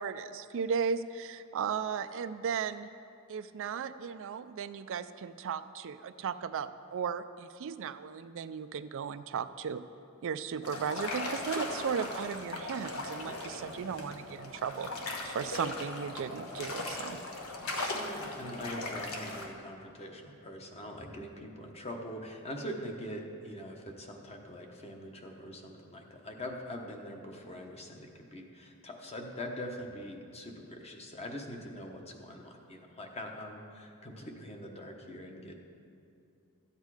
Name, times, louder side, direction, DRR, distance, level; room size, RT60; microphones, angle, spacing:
voice 1, 0.0-2.9 3.3-9.8 10.2-14.9 15.2-17.2 17.7-17.9, right 6 dB, 60° right, 11 dB, 0.4 m, -36 dB
sound 1, 10.6-19.5, left 2 dB, 70° left, 1.3 m, -38 dB
voice 2, 17.9-35.6, equal, 30° left, 2 dB, 1.1 m, -43 dB
13.5 x 8.2 x 4.8 m, 2.5 s
head